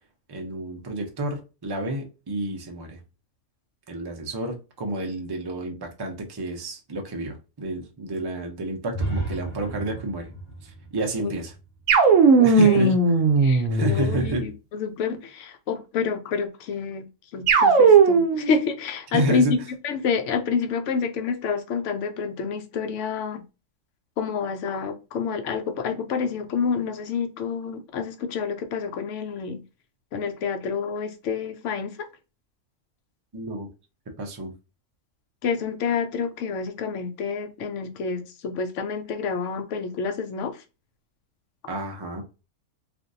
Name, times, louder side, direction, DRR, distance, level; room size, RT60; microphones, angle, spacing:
voice 1, 0.3-3.0 3.9-10.3 10.6-11.5 12.4-13.0 13.7-14.4 19.1-19.6 33.3-33.7 34.2-34.5 41.7-42.2, right 2 dB, 40° right, 0.3 m, -30 dB
sound 1, 8.9-12.7, right 2 dB, 10° right, 1.0 m, -34 dB
sound 2, 11.9-14.4 17.5-18.5, right 4 dB, 65° right, 1.0 m, -17 dB
voice 2, 12.4-12.9 13.4-23.4 24.2-29.6 30.1-32.1 35.4-40.6, left 5 dB, 65° left, 0.8 m, -28 dB
3.4 x 2.5 x 2.6 m
omnidirectional pair, 1.5 m